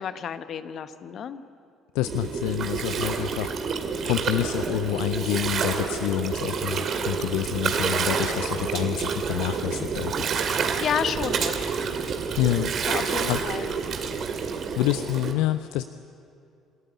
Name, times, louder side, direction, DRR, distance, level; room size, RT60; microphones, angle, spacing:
voice 1, 0.0-1.4 10.8-11.7 12.8-13.7, left 8 dB, 50° left, 11 dB, 1.2 m, -31 dB
voice 2, 1.9-3.7 4.0-10.2 12.4-12.7 13.3-13.4 14.8-15.8, left 16 dB, 70° left, 13 dB, 0.5 m, -27 dB
Gurgling, 2.0-15.3, right 6 dB, 50° right, 2.3 m, -28 dB
27.0 x 14.0 x 9.8 m, 2.5 s
hypercardioid pair, 55°, 0 cm